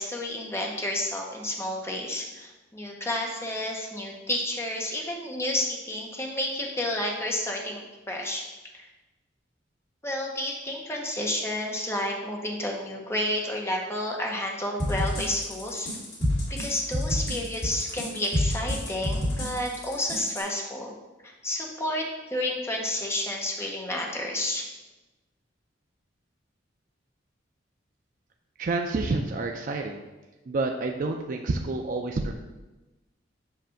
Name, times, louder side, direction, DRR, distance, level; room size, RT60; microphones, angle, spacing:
voice 1, 0.0-8.4 8.7-8.9 10.0-15.9 16.5-20.9 21.2-24.7, left 1 dB, 15° left, 0 dB, 0.9 m, -31 dB
sound 1, 14.8-20.4, equal, 60° left, 2.2 m, -28 dB
voice 2, 28.6-30.0 30.5-32.3, right 3 dB, 45° right, 3 dB, 0.4 m, -28 dB
7.6 x 2.6 x 5.7 m, 1.1 s
head